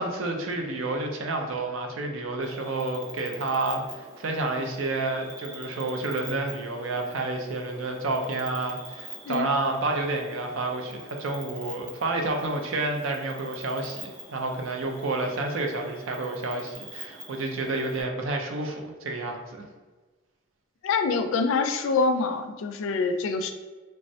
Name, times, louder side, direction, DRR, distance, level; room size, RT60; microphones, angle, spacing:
voice 1, 0.0-19.7, right 2 dB, 75° right, 3 dB, 0.5 m, -30 dB
Cricket, 2.4-18.0, right 1 dB, 45° right, 0.8 m, -45 dB
voice 2, 20.8-23.5, left 4 dB, 75° left, 7 dB, 0.3 m, -25 dB
3.3 x 2.0 x 2.6 m, 1.3 s
head